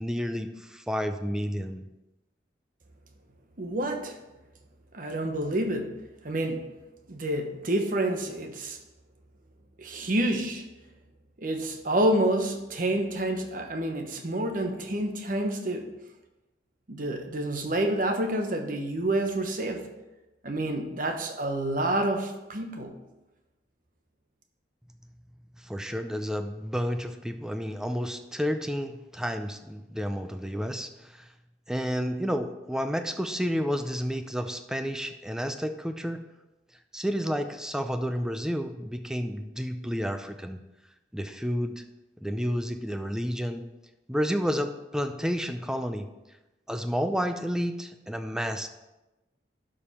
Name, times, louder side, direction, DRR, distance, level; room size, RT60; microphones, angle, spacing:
voice 1, 0.0-1.9 25.6-31.3 31.7-36.2 36.9-40.6 41.1-41.8 42.2-43.6 44.1-46.0 46.7-48.7, equal, 5° right, 7 dB, 0.4 m, -30 dB
voice 2, 3.6-4.2 4.9-6.0 6.2-6.7 7.1-8.8 9.8-10.7 11.4-15.9 16.9-19.9 20.4-22.9, right 1 dB, 50° right, 4 dB, 1.1 m, -28 dB
11.5 x 5.2 x 4.3 m, 1.0 s
head